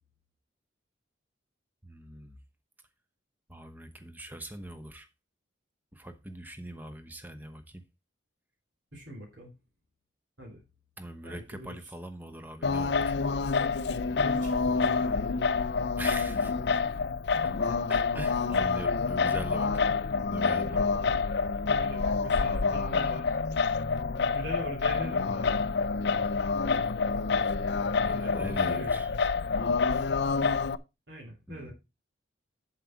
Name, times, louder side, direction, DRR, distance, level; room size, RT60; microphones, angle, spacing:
voice 1, 1.8-2.4 3.5-5.1 5.9-7.8 11.0-13.1 16.0-16.5 17.4-19.9 20.3-20.8 28.0-29.1 31.5-31.7, right 1 dB, 10° right, 0.9 m, -42 dB
voice 2, 8.9-9.5 10.4-10.6 11.2-11.8 14.1-15.1 20.6-21.2 21.6-23.4 24.2-25.7 28.0-29.0 31.1-31.7, equal, 70° right, 3.2 m, -42 dB
Singing, 12.6-30.8, left 4 dB, 60° left, 0.5 m, -27 dB
7.7 x 7.4 x 4.5 m
head